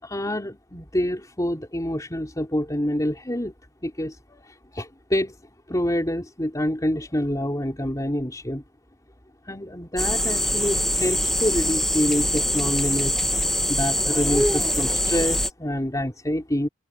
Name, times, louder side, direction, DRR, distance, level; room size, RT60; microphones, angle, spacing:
voice 1, 0.0-3.5 3.8-5.4 5.7-8.6 9.5-13.1 13.7-16.7, equal, 15° left, 3.7 m, -27 dB
sound 1, 10.0-15.5, equal, ahead, 1.0 m, -23 dB
head